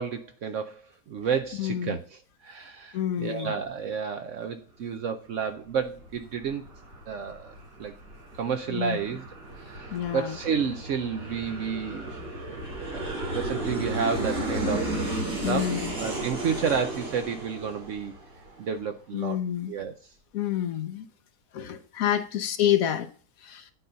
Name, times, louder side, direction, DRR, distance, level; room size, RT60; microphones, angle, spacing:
voice 1, 0.0-6.6 7.1-7.9 8.3-9.3 9.5-12.1 12.5-13.1 13.3-18.1 18.6-20.1, right 6 dB, 65° right, 0.8 m, -31 dB
voice 2, 1.6-2.0 2.9-3.5 8.7-9.0 9.9-10.4 15.4-15.9 19.1-19.7 20.3-21.0 21.5-23.1 23.4-23.7, left 10 dB, 65° left, 1.0 m, -28 dB
Aircraft, 5.6-18.8, right 1 dB, 85° right, 4.6 m, -34 dB
9.2 x 4.0 x 5.5 m
omnidirectional pair, 1.8 m